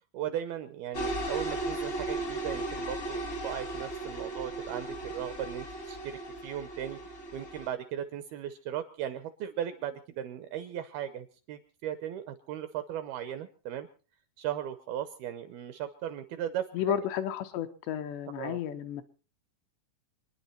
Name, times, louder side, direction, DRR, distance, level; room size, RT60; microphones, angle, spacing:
voice 1, 0.1-13.9 14.4-17.0 18.4-18.6, right 10 dB, 75° right, 11 dB, 2.3 m, -37 dB
sound 1, 0.9-7.7, right 2 dB, 40° left, 1.1 m, -36 dB
voice 2, 16.7-19.0, left 10 dB, 75° left, 8 dB, 3.1 m, -32 dB
27.5 x 10.0 x 4.3 m, 0.37 s
omnidirectional pair, 5.2 m